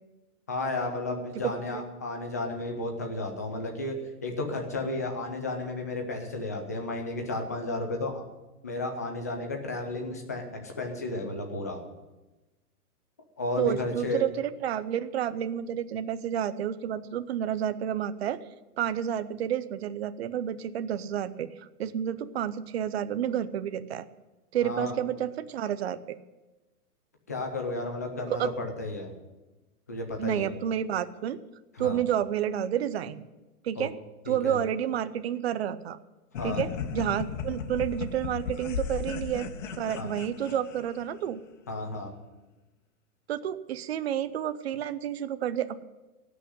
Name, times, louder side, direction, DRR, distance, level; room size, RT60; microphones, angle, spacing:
voice 1, 0.5-3.9 4.2-8.2 8.6-11.8 13.4-14.2 24.6-25.0 27.3-29.1 29.9-30.5 31.7-32.0 33.8-33.9 34.3-34.6 36.4-36.6 39.9-40.1 41.7-42.1, left 2 dB, 10° left, 3 dB, 0.4 m, -33 dB
voice 2, 1.4-1.8 13.6-18.4 18.8-24.1 24.5-26.2 28.3-28.5 30.2-31.4 31.8-33.3 33.6-34.0 34.3-36.0 36.4-39.5 39.8-41.4 43.3-45.8, right 10 dB, 45° right, 12 dB, 0.7 m, -30 dB
sound 1, 36.3-41.1, left 6 dB, 55° left, 1.1 m, -36 dB
17.0 x 6.3 x 9.5 m, 1.1 s
hypercardioid pair, 165°, 46 cm